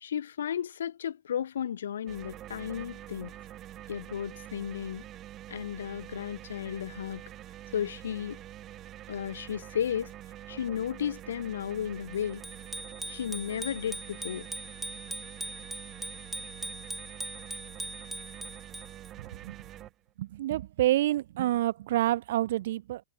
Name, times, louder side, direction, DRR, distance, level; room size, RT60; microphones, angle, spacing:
voice 1, 0.0-3.3 3.9-5.1 5.5-7.2 7.7-8.4 9.1-10.1 10.5-12.4 13.1-14.5, left 9 dB, 65° left, 0.4 m, -34 dB
sound 1, 2.1-19.9, right 12 dB, 30° right, 1.6 m, -46 dB
Bicycle bell, 12.4-19.1, right 1 dB, 5° right, 1.7 m, -40 dB
voice 2, 19.2-19.6 20.2-23.0, right 14 dB, 55° right, 1.1 m, -28 dB
figure-of-eight pair, 90°, 0 cm